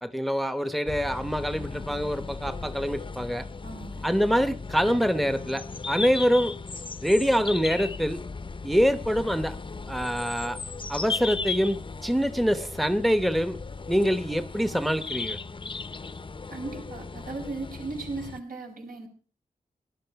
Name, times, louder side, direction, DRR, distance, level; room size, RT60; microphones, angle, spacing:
voice 1, 0.0-3.5 4.0-6.5 7.0-8.2 8.6-9.6 9.9-10.6 10.9-13.6 13.9-15.4, equal, ahead, 0.8 m, -25 dB
sound 1, 0.9-18.4, left 4 dB, 35° left, 0.7 m, -37 dB
voice 2, 3.6-4.1 16.5-19.1, right 3 dB, 80° right, 5.4 m, -37 dB
18.5 x 11.5 x 5.8 m
wide cardioid pair, 115°, 15 cm